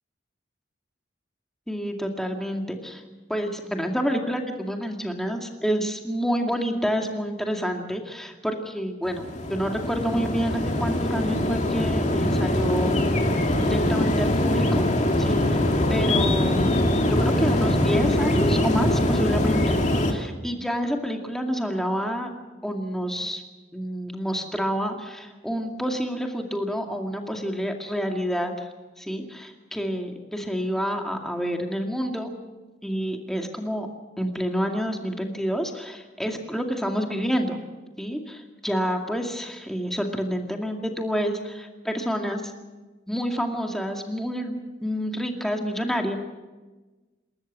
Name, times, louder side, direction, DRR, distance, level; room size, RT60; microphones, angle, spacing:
voice 1, 1.7-3.0 3.3-13.1 13.6-14.8 15.2-15.6 15.9-19.8 20.1-22.3 22.6-23.4 23.7-28.7 29.0-32.3 32.8-33.9 34.2-37.6 38.0-42.5 43.1-46.2, equal, ahead, 2 dB, 2.2 m, -28 dB
sound 1, 9.0-20.1, left 1 dB, 40° left, 2.5 m, -23 dB
28.0 x 13.5 x 7.4 m, 1.2 s
head